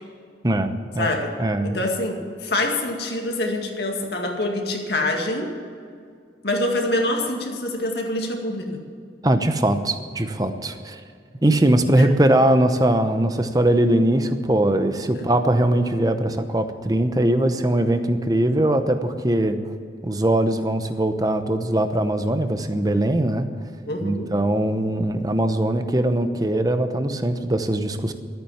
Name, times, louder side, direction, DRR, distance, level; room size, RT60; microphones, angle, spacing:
voice 1, 0.4-1.1 1.4-1.8 9.2-11.0 11.4-19.6 20.0-23.5 24.0-28.1, right 1 dB, 20° right, 8 dB, 0.9 m, -21 dB
voice 2, 1.0-1.3 1.6-5.5 6.4-8.8 11.9-12.1 15.1-15.3 23.9-24.3, left 1 dB, 65° left, 1 dB, 2.2 m, -25 dB
13.5 x 9.2 x 7.2 m, 2.2 s
head